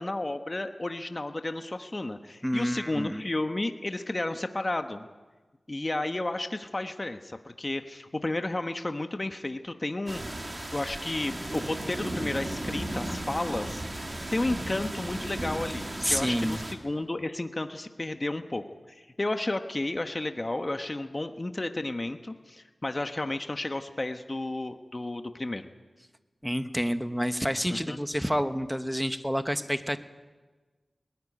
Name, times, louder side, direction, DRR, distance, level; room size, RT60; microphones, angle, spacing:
voice 1, 0.0-5.1 5.7-10.2 10.7-13.8 14.3-25.7 27.7-28.0, left 2 dB, 35° left, 7 dB, 1.2 m, -32 dB
voice 2, 2.4-3.2 16.0-16.6 26.4-30.0, equal, ahead, 9 dB, 1.2 m, -29 dB
sound 1, 10.1-16.7, right 1 dB, 35° right, 2.9 m, -35 dB
20.0 x 14.0 x 9.9 m, 1.3 s
cardioid pair, 50°, 0 cm